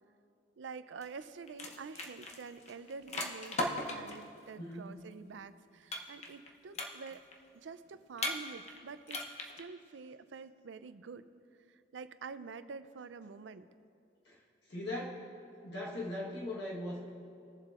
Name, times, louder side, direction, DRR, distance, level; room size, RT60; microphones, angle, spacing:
voice 1, 0.6-7.3 7.5-9.3 9.6-11.3 11.7-13.7, right 5 dB, 85° right, 13 dB, 0.4 m, -47 dB
sound 1, 1.0-1.2 1.5-4.2 5.9-6.5 6.7-7.3 8.2-8.8 9.1-9.6, left 2 dB, 35° left, 0.8 m, -37 dB
voice 2, 4.6-5.0 14.2-14.4 14.7-15.2 15.6-17.1, left 1 dB, 65° left, -4 dB, 1.3 m, -39 dB
22.0 x 7.3 x 2.5 m, 2.5 s
head